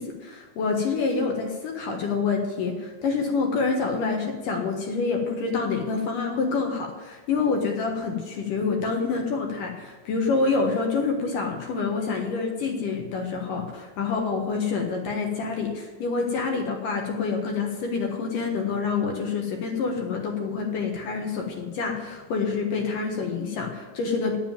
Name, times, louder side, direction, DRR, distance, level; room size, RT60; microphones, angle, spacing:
voice 1, 0.0-24.4, left 4 dB, 60° left, 2 dB, 2.4 m, -27 dB
9.9 x 7.4 x 9.1 m, 1.2 s
omnidirectional pair, 5.2 m